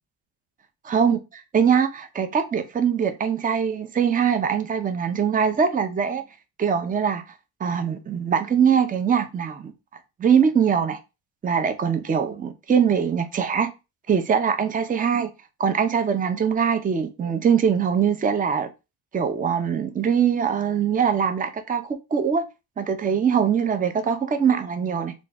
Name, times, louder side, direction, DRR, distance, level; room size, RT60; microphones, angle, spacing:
voice 1, 0.9-6.2 6.6-7.2 7.6-9.7 10.2-11.0 11.4-13.7 14.1-15.3 15.6-18.7 19.1-22.4 22.8-25.1, right 7 dB, 20° right, 0.6 m, -22 dB
3.1 x 2.5 x 3.8 m
supercardioid pair, 90°, 38 cm